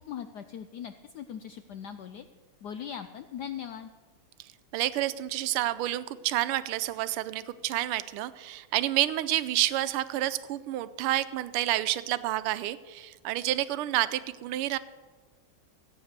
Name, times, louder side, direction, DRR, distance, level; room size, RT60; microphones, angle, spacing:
voice 1, 0.1-2.2 2.6-3.9, left 8 dB, 85° left, 9 dB, 0.9 m, -40 dB
voice 2, 4.7-14.8, right 14 dB, 85° right, 14 dB, 1.5 m, -29 dB
15.0 x 8.8 x 6.6 m, 1.4 s
omnidirectional pair, 2.4 m